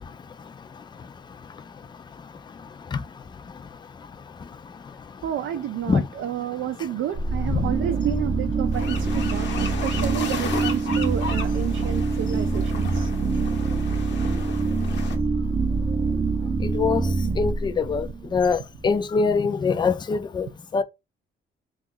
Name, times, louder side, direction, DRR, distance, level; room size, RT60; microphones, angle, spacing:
voice 1, 5.2-13.1, right 11 dB, 75° right, 0.5 m, -30 dB
sound 1, 7.1-18.9, right 4 dB, 25° right, 0.6 m, -25 dB
sound 2, 8.7-15.2, left 6 dB, 65° left, 0.9 m, -35 dB
voice 2, 16.6-17.1 17.4-20.8, left 5 dB, 25° left, 0.4 m, -24 dB
2.9 x 2.4 x 3.7 m
cardioid pair, 90°, 20 cm